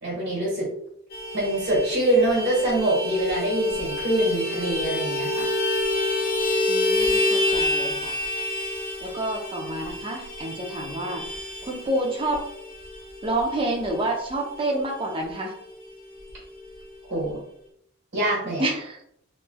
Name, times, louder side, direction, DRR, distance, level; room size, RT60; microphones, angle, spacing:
voice 1, 0.0-0.7 1.3-5.5 17.1-17.4 18.1-18.6, right 1 dB, 55° right, -6 dB, 1.4 m, -24 dB
Vehicle horn car horn honking, 1.1-15.0 15.3-15.4 15.7-15.9 16.1-16.9, left 1 dB, 50° left, 0.9 m, -28 dB
voice 2, 6.7-8.2 9.0-11.2 11.6-12.4 13.2-15.5 18.6-19.0, right 1 dB, 25° right, 0 dB, 0.6 m, -28 dB
3.1 x 3.0 x 2.2 m, 0.73 s
head